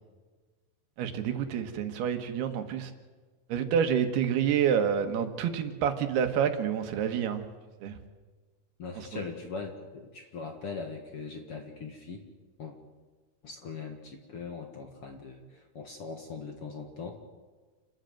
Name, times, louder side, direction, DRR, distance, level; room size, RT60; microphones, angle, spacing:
voice 1, 1.0-2.9 3.5-7.4 7.8-8.0, right 8 dB, 85° right, 7 dB, 3.5 m, -28 dB
voice 2, 8.8-12.3 12.6-12.8 13.4-17.2, left 4 dB, 50° left, 4 dB, 2.0 m, -40 dB
28.5 x 13.0 x 9.1 m, 1.4 s
omnidirectional pair, 4.5 m